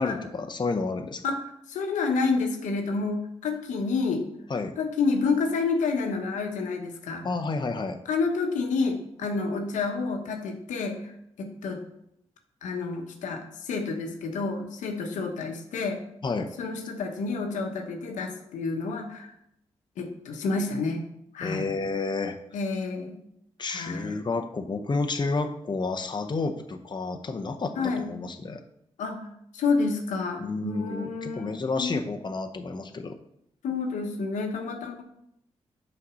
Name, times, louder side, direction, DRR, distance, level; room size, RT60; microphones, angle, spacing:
voice 1, 0.0-1.2 4.5-4.8 7.2-8.0 16.2-16.5 21.4-22.4 23.6-28.6 30.4-33.2, left 3 dB, 35° left, 5 dB, 0.8 m, -30 dB
voice 2, 1.2-4.3 4.8-7.3 8.1-11.1 11.4-11.8 12.6-16.0 16.6-19.3 20.0-21.0 21.3-21.7 22.5-23.2 23.6-24.2 27.8-28.1 29.0-29.2 29.5-31.9 33.6-35.0, left 4 dB, 85° left, 4 dB, 1.0 m, -29 dB
5.7 x 4.3 x 6.2 m, 0.75 s
supercardioid pair, 50°, 12 cm